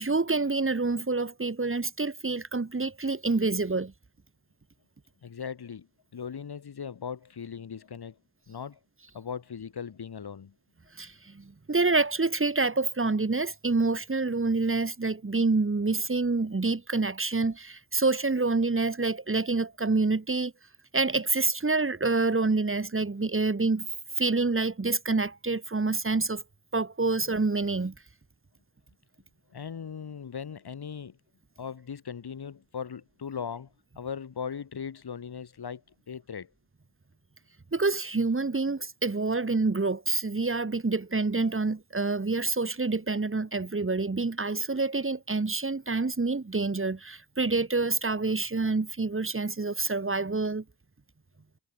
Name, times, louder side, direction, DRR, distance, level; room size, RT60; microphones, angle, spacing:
voice 1, 0.0-3.9 11.0-20.5 20.9-23.9 24.2-26.4 26.7-27.9 37.7-50.6, right 3 dB, 30° right, 3.1 m, -27 dB
voice 2, 5.2-5.9 6.1-8.2 8.5-8.8 9.1-10.5 29.5-31.2 31.6-33.7 34.0-35.8 36.1-36.5, left 7 dB, 70° left, 7.9 m, -38 dB
supercardioid pair, 45°, 40 cm